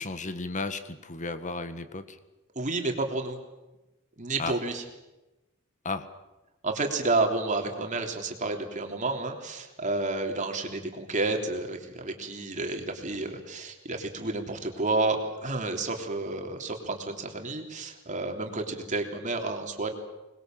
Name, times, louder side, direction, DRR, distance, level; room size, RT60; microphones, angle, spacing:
voice 1, 0.0-2.2 4.4-4.6 5.8-6.1, left 3 dB, 35° left, 10 dB, 1.6 m, -34 dB
voice 2, 2.5-3.4 4.2-4.8 6.6-19.9, right 3 dB, 35° right, 3 dB, 3.3 m, -30 dB
25.5 x 21.0 x 7.7 m, 1.1 s
head